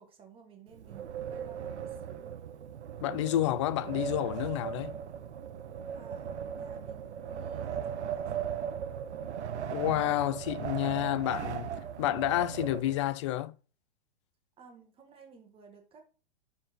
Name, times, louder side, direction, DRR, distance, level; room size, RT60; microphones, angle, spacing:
voice 1, 0.0-2.3 5.9-8.8 14.6-16.0, right 5 dB, 15° right, 1.8 m, -55 dB
Wind, 0.7-13.3, right 8 dB, 85° right, 1.2 m, -38 dB
voice 2, 3.0-5.0 9.7-11.7 12.0-13.5, left 14 dB, 30° left, 0.4 m, -30 dB
11.5 x 4.3 x 4.5 m
hypercardioid pair, 155°, 33 cm